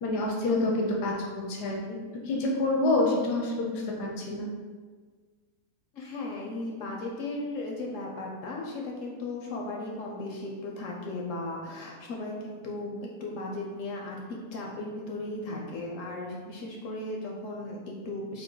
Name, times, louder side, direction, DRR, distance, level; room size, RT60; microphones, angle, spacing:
voice 1, 0.0-2.0 2.2-4.5, left 2 dB, 85° left, -1 dB, 1.2 m, -27 dB
voice 2, 5.9-18.4, left 2 dB, 70° left, -1 dB, 0.8 m, -36 dB
3.7 x 2.6 x 3.8 m, 1.5 s
omnidirectional pair, 1.7 m